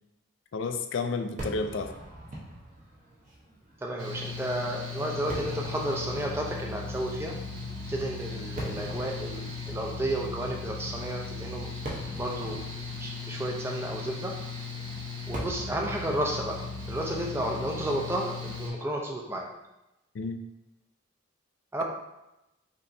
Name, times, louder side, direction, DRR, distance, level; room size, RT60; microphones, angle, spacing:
voice 1, 0.5-1.9 20.1-20.4, left 4 dB, 65° left, 7 dB, 0.4 m, -31 dB
Fireworks, 1.4-18.7, right 1 dB, 40° right, 0.8 m, -44 dB
voice 2, 3.8-7.4 7.9-11.7 12.2-12.7 13.0-14.3 15.3-16.6 16.9-19.5 21.7-21.8, right 1 dB, 10° right, 0 dB, 0.4 m, -32 dB
Mechanical fan, 4.0-18.7, left 4 dB, 75° right, 1.0 m, -37 dB
5.2 x 2.9 x 2.6 m, 0.94 s
head